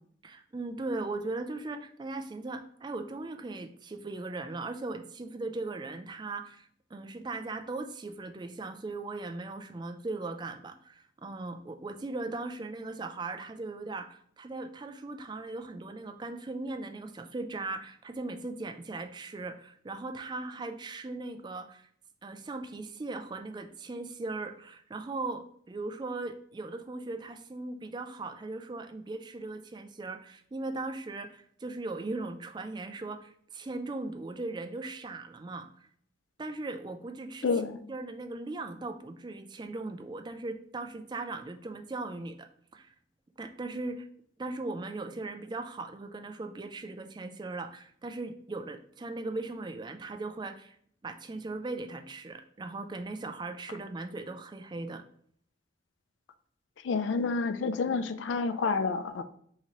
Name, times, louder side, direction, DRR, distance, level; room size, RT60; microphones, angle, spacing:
voice 1, 0.2-21.9 22.2-35.7 36.4-37.5 37.9-42.5 42.7-42.9 43.4-44.1 44.4-50.8 51.0-55.0, right 3 dB, 20° right, 6 dB, 0.3 m, -38 dB
voice 2, 37.4-37.8 56.8-59.2, left 4 dB, 75° left, 12 dB, 0.4 m, -29 dB
5.7 x 2.9 x 3.0 m, 0.63 s
head